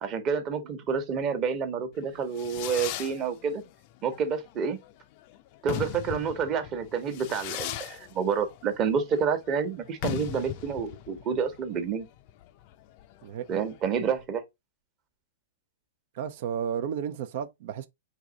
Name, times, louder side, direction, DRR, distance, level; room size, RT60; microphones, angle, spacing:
voice 1, 0.0-3.6 4.0-4.8 5.6-12.1 13.5-14.4, right 6 dB, 35° right, 1.1 m, -29 dB
Fireworks, 2.0-14.2, left 13 dB, 45° left, 0.5 m, -39 dB
voice 2, 16.1-17.9, right 8 dB, 55° right, 0.5 m, -32 dB
4.7 x 2.7 x 3.8 m
hypercardioid pair, 115°, 0 cm